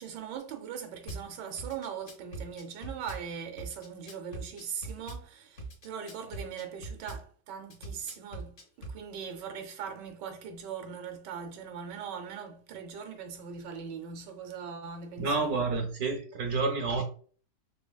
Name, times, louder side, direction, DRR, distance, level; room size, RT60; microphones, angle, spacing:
voice 1, 0.0-15.6, right 7 dB, 85° right, 1.4 m, -40 dB
Drum kit / Bass drum, 1.1-1.2 1.6-3.2 3.6-5.2 5.6-7.2 7.7-9.0, right 2 dB, 50° left, 1.0 m, -41 dB
voice 2, 15.2-17.0, right 3 dB, 70° right, 1.0 m, -29 dB
3.9 x 3.3 x 2.2 m
omnidirectional pair, 1.8 m